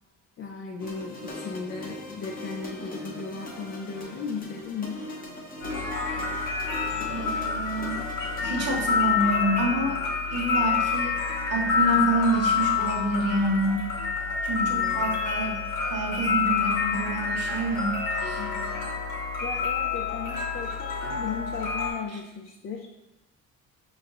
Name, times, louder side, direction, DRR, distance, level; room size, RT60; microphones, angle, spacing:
voice 1, 0.4-5.1 14.5-15.2 18.4-18.9 19.4-22.9, left 5 dB, 45° left, 0 dB, 0.5 m, -36 dB
sound 1, 0.8-8.8, left 2 dB, 30° left, 0.8 m, -40 dB
sound 2, 5.6-21.9, left 6 dB, 80° left, 1.1 m, -28 dB
voice 2, 7.0-8.0 8.4-10.0 10.3-11.2 11.5-13.8 14.4-15.6 15.9-18.4, right 2 dB, 55° right, -2 dB, 1.2 m, -27 dB
5.5 x 2.9 x 2.5 m, 0.95 s
cardioid pair, 90°, 30 cm